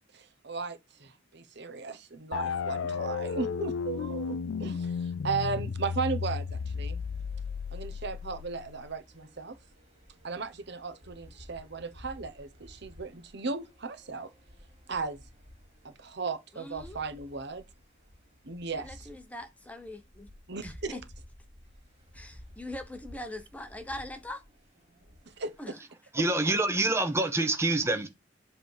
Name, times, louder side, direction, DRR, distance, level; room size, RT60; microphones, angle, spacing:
voice 1, 0.1-7.0 7.7-9.6 10.2-14.3 14.9-15.2 15.8-17.6 18.4-19.1 20.5-21.0 25.4-25.7, right 4 dB, 60° right, 1.1 m, -36 dB
sound 1, 2.3-9.0, left 5 dB, 90° left, 0.4 m, -34 dB
sound 2, 6.4-25.6, left 1 dB, 30° right, 3.7 m, -53 dB
voice 2, 16.5-17.1 18.7-20.3 20.6-21.0 22.1-24.4 25.6-25.7, left 1 dB, 10° left, 1.0 m, -42 dB
voice 3, 26.1-28.1, right 2 dB, 15° right, 0.9 m, -26 dB
8.0 x 3.6 x 4.6 m
head